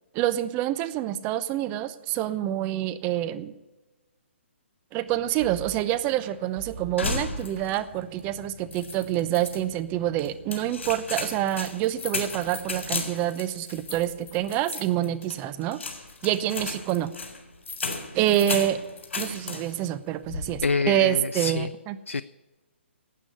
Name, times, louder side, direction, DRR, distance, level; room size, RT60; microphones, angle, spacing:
voice 1, 0.1-3.5 4.9-15.8 16.2-17.1 18.1-18.8 19.2-22.0, right 13 dB, 25° right, 12 dB, 0.7 m, -27 dB
sound 1, 5.1-13.0, right 3 dB, 45° right, 3.6 m, -47 dB
sound 2, 7.0-7.9 8.2-8.3 8.7-9.6 10.2-19.9 20.2-20.7, left 4 dB, 70° left, 3.7 m, -35 dB
voice 2, 20.6-21.7 22.1-22.2, left 4 dB, 90° left, 16 dB, 0.4 m, -26 dB
12.5 x 8.3 x 9.6 m, 1.1 s
figure-of-eight pair, 135°, 7 cm